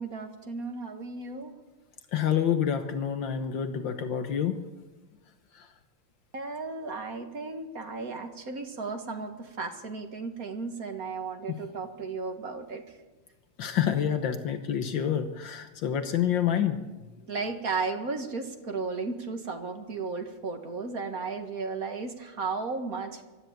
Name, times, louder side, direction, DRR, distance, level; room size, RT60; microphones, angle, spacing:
voice 1, 0.0-1.6 6.3-13.0 17.3-23.2, right 4 dB, 50° right, 5 dB, 2.2 m, -34 dB
voice 2, 2.1-4.7 5.5-5.7 11.5-11.6 13.6-17.0, left 9 dB, 75° left, 8 dB, 1.7 m, -28 dB
23.5 x 13.0 x 9.0 m, 1.2 s
omnidirectional pair, 2.1 m